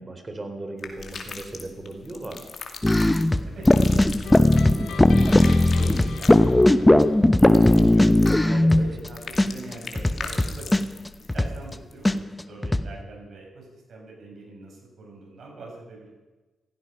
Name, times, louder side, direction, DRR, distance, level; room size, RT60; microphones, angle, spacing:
voice 1, 0.0-2.4 8.4-8.8, right 2 dB, 30° right, 6 dB, 3.7 m, -37 dB
sound 1, 0.8-12.2, left 5 dB, 55° left, 2.5 m, -40 dB
sound 2, 2.8-9.1 9.4-9.5 9.7-11.7 12.0-12.1 12.4-12.9, left 1 dB, 15° left, 0.9 m, -18 dB
voice 2, 3.4-8.1 8.4-10.9 11.3-16.1, right 2 dB, 65° right, -1 dB, 7.6 m, -43 dB
sound 3, 4.2-7.5, left 5 dB, 80° left, 2.2 m, -41 dB
16.0 x 15.5 x 5.5 m, 1.2 s
cardioid pair, 70°, 0 cm